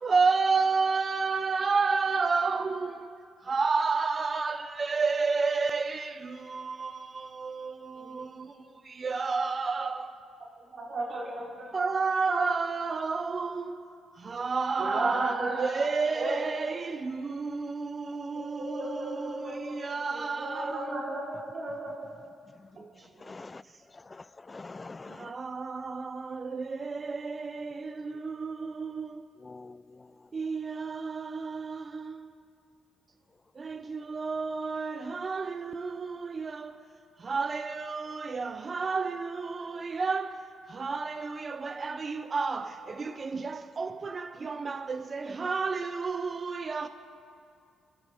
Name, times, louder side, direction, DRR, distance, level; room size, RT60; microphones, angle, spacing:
voice 1, 0.0-3.1 3.5-8.5 8.9-10.1 11.7-13.8 14.2-21.0 25.2-29.2 30.3-32.3 33.6-36.8 37.2-40.4 40.7-46.9, right 4 dB, 35° right, 0.5 m, -31 dB
voice 2, 10.7-11.4 12.3-12.4 14.8-15.8 16.1-16.3 18.3-22.0, right 2 dB, 55° right, 3.7 m, -34 dB
voice 3, 23.3-23.6 24.5-25.3 29.4-29.8, left 3 dB, 25° left, 0.3 m, -43 dB
24.5 x 14.0 x 3.5 m
cardioid pair, 90°, 0 cm